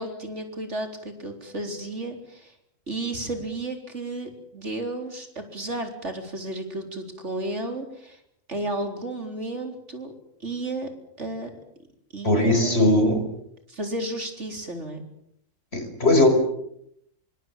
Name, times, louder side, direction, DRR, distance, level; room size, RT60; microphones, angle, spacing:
voice 1, 0.0-2.5 2.9-8.2 8.5-10.1 10.4-10.9 11.2-11.5 12.1-12.9 13.7-15.0, right 2 dB, 65° right, 5 dB, 4.5 m, -33 dB
voice 2, 12.2-13.2 15.7-16.3, left 1 dB, 55° left, 7 dB, 5.6 m, -19 dB
27.0 x 24.0 x 7.6 m, 0.73 s
omnidirectional pair, 1.3 m